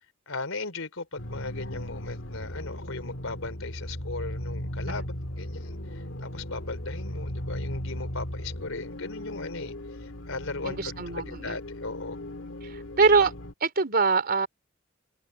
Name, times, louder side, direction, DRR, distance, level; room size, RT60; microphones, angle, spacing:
voice 1, 0.3-9.7 10.0-12.2, left 3 dB, 85° left, 3.7 m, -37 dB
sound 1, 1.2-13.5, left 1 dB, 70° left, 2.3 m, -37 dB
voice 2, 10.6-11.6 13.0-13.3 13.6-14.5, right 4 dB, 50° right, 4.0 m, -23 dB
head